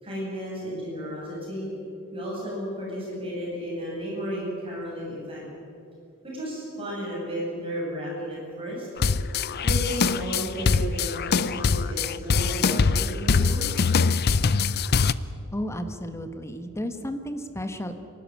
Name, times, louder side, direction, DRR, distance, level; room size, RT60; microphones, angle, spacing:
voice 1, 0.0-1.7 2.1-5.4 6.2-8.9 9.6-13.7, equal, 25° right, -4 dB, 7.8 m, -33 dB
sound 1, 9.0-15.1, left 5 dB, 45° left, 0.5 m, -23 dB
voice 2, 15.5-17.9, equal, 10° left, 8 dB, 1.2 m, -33 dB
28.0 x 12.5 x 10.0 m, 2.5 s
head